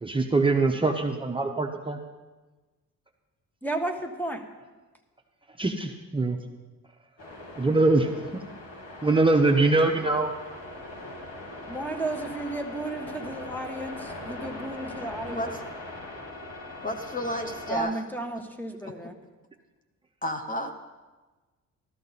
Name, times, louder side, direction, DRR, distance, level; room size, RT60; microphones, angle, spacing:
voice 1, 0.0-2.0 5.6-6.4 7.6-8.1 9.0-10.3, right 3 dB, 15° right, 2 dB, 0.8 m, -23 dB
voice 2, 3.6-4.4 11.7-15.5 17.7-19.1, right 2 dB, 5° left, 5 dB, 1.5 m, -33 dB
sound 1, 7.2-17.8, left 2 dB, 55° left, 2.8 m, -40 dB
voice 3, 15.3-15.6 16.8-18.0 20.2-20.7, equal, 25° left, 5 dB, 1.0 m, -31 dB
14.0 x 13.0 x 4.2 m, 1.2 s
cardioid pair, 90°, 30 cm